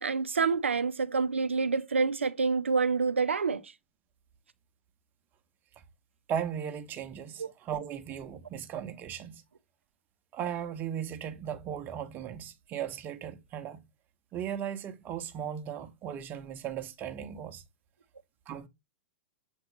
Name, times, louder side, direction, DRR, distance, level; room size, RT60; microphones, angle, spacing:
voice 1, 0.0-3.7 7.4-7.5, right 4 dB, 75° right, 0.6 m, -27 dB
voice 2, 6.3-9.4 10.3-13.8 14.3-17.6 18.5-18.7, right 9 dB, 30° right, 1.1 m, -37 dB
7.5 x 4.3 x 3.1 m
figure-of-eight pair, 100°, 7 cm